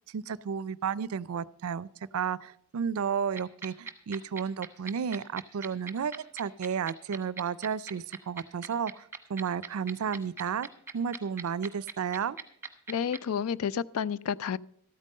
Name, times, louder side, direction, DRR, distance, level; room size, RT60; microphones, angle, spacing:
voice 1, 0.1-1.9 2.1-10.7 10.9-12.4, right 7 dB, 75° right, 0.4 m, -32 dB
sound 1, 3.4-13.2, right 5 dB, 10° right, 1.0 m, -39 dB
voice 2, 12.9-14.6, left 7 dB, 80° left, 0.4 m, -30 dB
13.0 x 9.1 x 5.3 m
head